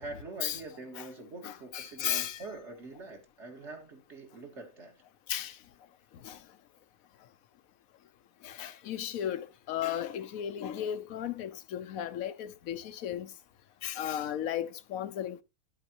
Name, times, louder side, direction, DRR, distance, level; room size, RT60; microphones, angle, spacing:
voice 1, 0.0-4.9, right 3 dB, 55° right, 1.9 m, -44 dB
voice 2, 1.4-2.4 5.3-5.6 6.2-6.4 8.4-13.3 13.8-15.4, left 10 dB, 85° left, 1.1 m, -35 dB
10.5 x 8.5 x 2.8 m
omnidirectional pair, 1.4 m